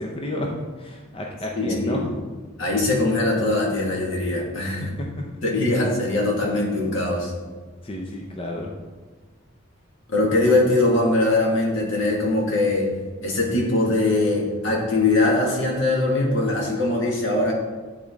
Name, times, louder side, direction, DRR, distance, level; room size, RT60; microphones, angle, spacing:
voice 1, 0.0-2.2 4.8-5.4 7.8-8.7, left 1 dB, 25° left, 0 dB, 0.6 m, -31 dB
voice 2, 1.5-2.0 2.6-4.9 5.4-7.3 10.1-12.9 13.2-17.5, left 2 dB, 75° left, -2 dB, 1.8 m, -21 dB
10.0 x 3.7 x 3.5 m, 1.4 s
head